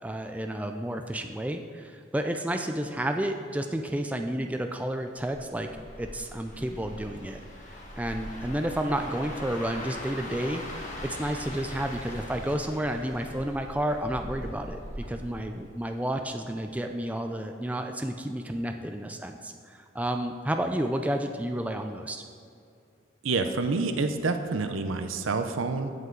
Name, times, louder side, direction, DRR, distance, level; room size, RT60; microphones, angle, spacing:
voice 1, 0.0-5.7 6.0-7.4 8.0-14.8 15.1-22.2, right 1 dB, 5° right, 5 dB, 0.4 m, -31 dB
sound 1, 5.1-16.2 16.6-16.9, left 1 dB, 40° left, 1.4 m, -41 dB
voice 2, 23.2-25.9, right 3 dB, 90° right, 8 dB, 0.7 m, -28 dB
15.5 x 5.4 x 3.9 m, 2.4 s
head